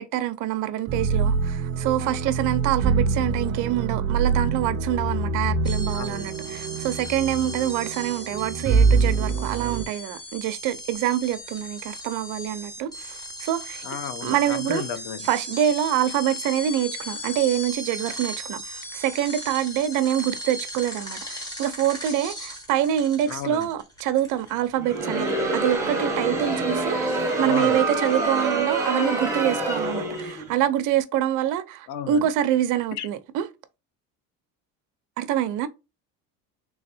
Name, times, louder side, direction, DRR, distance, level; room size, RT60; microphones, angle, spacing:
voice 1, 0.0-13.8 14.2-14.8 15.2-33.5 35.2-35.7, right 11 dB, 65° right, 0.7 m, -26 dB
sound 1, 0.9-9.9, right 4 dB, 35° right, 0.4 m, -25 dB
sound 2, 5.6-24.8, left 1 dB, 10° left, 1.5 m, -37 dB
voice 2, 5.9-6.3 13.8-15.3 23.3-23.7 27.5-27.8 31.9-32.2 32.9-33.1, left 8 dB, 65° left, 0.6 m, -34 dB
Crowd, 24.8-30.5, right 2 dB, 10° right, 1.2 m, -26 dB
3.4 x 3.2 x 2.7 m
cardioid pair, 125°, 33 cm